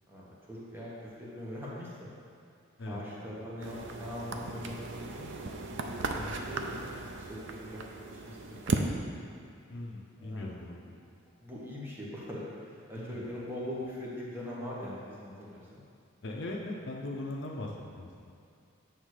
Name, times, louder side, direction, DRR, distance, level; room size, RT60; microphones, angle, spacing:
voice 1, 0.1-2.1 2.8-5.9 6.5-9.2 10.2-10.5 11.4-15.8, left 1 dB, 10° right, -7 dB, 1.2 m, -42 dB
sound 1, 3.6-8.9, right 3 dB, 60° right, 0.5 m, -36 dB
voice 2, 9.7-10.8 13.0-13.2 16.2-18.3, left 2 dB, 55° left, -2 dB, 0.7 m, -39 dB
7.9 x 3.6 x 6.5 m, 2.5 s
head